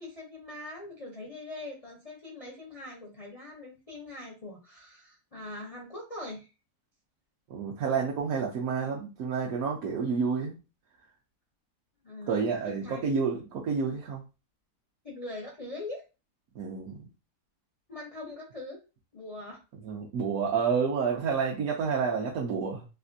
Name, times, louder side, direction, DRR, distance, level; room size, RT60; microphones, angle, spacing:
voice 1, 0.0-6.5 12.0-13.0 15.0-16.0 17.9-18.8 19.1-19.6, left 2 dB, 50° left, -3 dB, 0.4 m, -42 dB
voice 2, 7.5-10.6 12.3-14.2 16.5-17.1 19.8-22.9, right 5 dB, 65° right, -3 dB, 1.0 m, -29 dB
3.4 x 2.5 x 2.6 m, 0.30 s
omnidirectional pair, 1.8 m